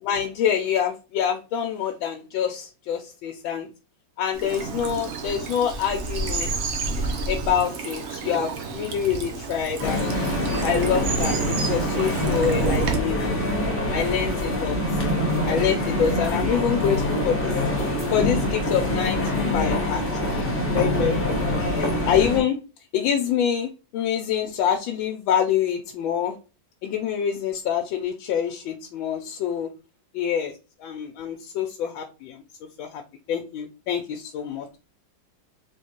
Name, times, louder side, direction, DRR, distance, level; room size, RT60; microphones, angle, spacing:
voice 1, 0.0-3.7 4.2-6.5 7.3-10.1 10.6-11.3 11.7-13.4 13.9-15.0 15.4-17.5 18.1-19.2 19.5-21.3 21.7-22.6 22.9-26.4 26.8-29.7 30.1-30.5 30.8-32.4 32.8-33.0 33.3-34.8, left 8 dB, 85° left, 2 dB, 1.3 m, -26 dB
Bird vocalization bird call bird song / Stream, 4.3-13.0, right 4 dB, 75° right, 0.6 m, -29 dB
sound 1, 9.8-22.4, left 1 dB, 15° left, 0.4 m, -25 dB
3.5 x 3.4 x 2.8 m, 0.32 s
omnidirectional pair, 2.1 m